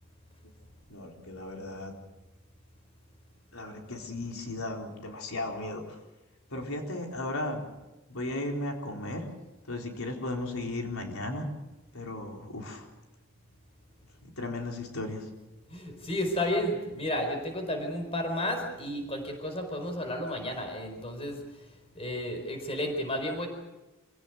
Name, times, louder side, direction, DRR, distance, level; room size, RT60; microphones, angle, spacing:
voice 1, 0.9-1.9 3.5-6.0 6.5-7.6 8.1-9.3 9.7-11.5 11.9-12.9 14.2-15.3, left 2 dB, 90° left, 1 dB, 4.2 m, -35 dB
voice 2, 15.7-23.5, left 1 dB, 30° left, 4 dB, 4.7 m, -32 dB
26.0 x 17.5 x 8.0 m, 1.0 s
head